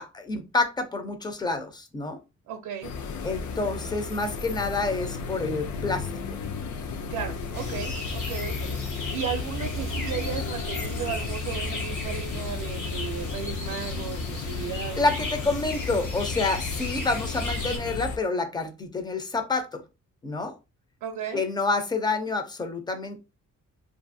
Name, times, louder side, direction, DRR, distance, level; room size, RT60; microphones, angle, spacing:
voice 1, 0.0-2.2 3.2-6.1 14.5-14.7 15.0-19.8 20.2-20.5 21.3-23.2, left 3 dB, 15° left, 0.4 m, -28 dB
voice 2, 2.5-2.9 7.1-15.1 21.0-21.4, right 8 dB, 80° right, 0.5 m, -35 dB
sound 1, 2.8-18.2, left 4 dB, 75° left, 0.5 m, -35 dB
sound 2, 7.5-17.8, left 3 dB, 90° left, 1.4 m, -34 dB
2.6 x 2.5 x 2.5 m
wide cardioid pair, 160°, 30 cm